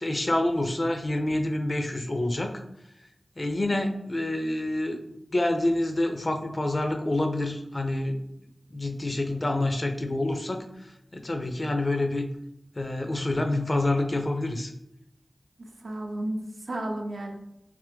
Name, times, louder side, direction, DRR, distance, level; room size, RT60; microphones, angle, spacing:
voice 1, 0.0-2.6 3.4-5.0 5.3-8.2 8.7-12.3 12.8-14.7, left 1 dB, 45° left, 5 dB, 0.5 m, -27 dB
voice 2, 15.6-17.4, right 1 dB, 80° right, 2 dB, 0.5 m, -33 dB
3.3 x 3.2 x 3.4 m, 0.81 s
wide cardioid pair, 50°, 0 cm